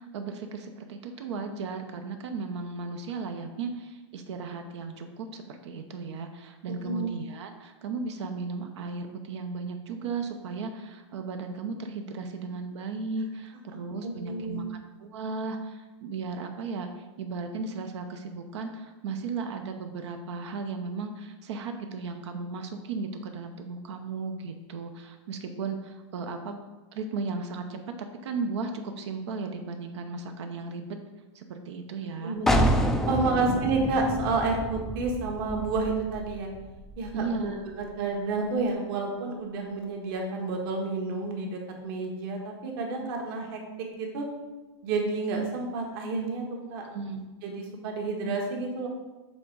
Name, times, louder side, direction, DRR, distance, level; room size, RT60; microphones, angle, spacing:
voice 1, 0.0-16.9 17.2-26.6 26.9-27.9 28.2-31.0 31.3-32.4 33.5-33.6 37.1-37.6 46.8-47.3, right 4 dB, 65° right, 6 dB, 0.9 m, -35 dB
voice 2, 6.7-7.1 14.0-14.6 32.2-32.7 33.1-36.5 37.0-44.2 44.8-46.9 47.4-48.9, right 3 dB, 50° right, 1 dB, 1.5 m, -30 dB
sound 1, 32.5-38.0, equal, ahead, 0.4 m, -29 dB
7.7 x 3.7 x 4.7 m, 1.1 s
hypercardioid pair, 145°, 16 cm